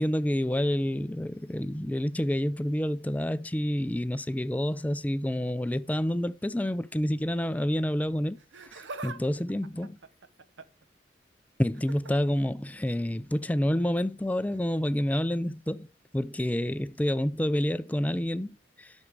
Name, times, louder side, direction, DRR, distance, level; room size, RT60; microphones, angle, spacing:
voice 1, 0.0-8.4 8.6-10.0 11.6-15.9 16.1-18.9, equal, 10° left, 0.4 m, -28 dB
Laughter, 8.4-9.2 9.5-10.8 11.7-12.1 13.4-13.6 14.5-14.6, right 3 dB, 80° right, 0.8 m, -43 dB
11.0 x 6.4 x 4.9 m
head